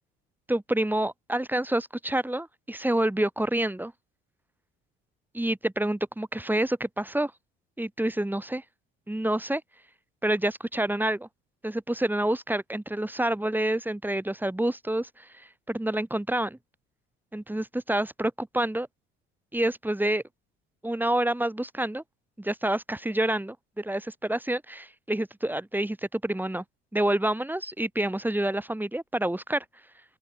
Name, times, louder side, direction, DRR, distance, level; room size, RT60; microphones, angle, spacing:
voice 1, 0.5-3.9 5.3-7.3 7.8-8.6 9.1-9.6 10.2-11.3 11.6-16.6 17.3-18.9 19.5-20.2 20.8-22.0 22.4-26.6 26.9-29.6, right 1 dB, 5° right, 2.2 m, -28 dB
open air
figure-of-eight pair, 55°, 33 cm